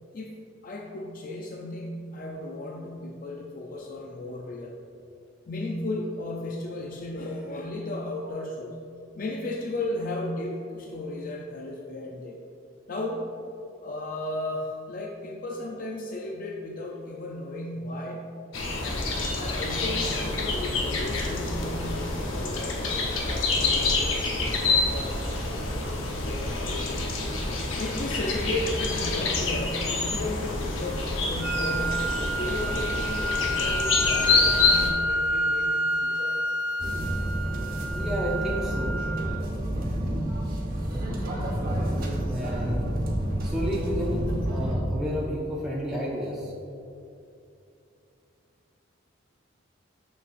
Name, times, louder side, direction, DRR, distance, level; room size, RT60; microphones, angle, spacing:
voice 1, 0.6-4.7 5.5-8.8 9.2-12.4 12.9-13.3 13.8-18.4 18.8-27.1 27.5-36.3, left 2 dB, 45° left, -1 dB, 0.5 m, -35 dB
sound 1, 18.5-34.9, left 3 dB, 85° left, 0.9 m, -27 dB
sound 2, 31.4-39.4, equal, 80° right, 0.4 m, -29 dB
sound 3, 36.8-44.7, right 1 dB, 50° right, 1.0 m, -29 dB
voice 2, 37.9-39.0 42.3-43.0 43.4-46.5, equal, ahead, -6 dB, 0.6 m, -31 dB
6.9 x 6.5 x 2.6 m, 2.6 s
head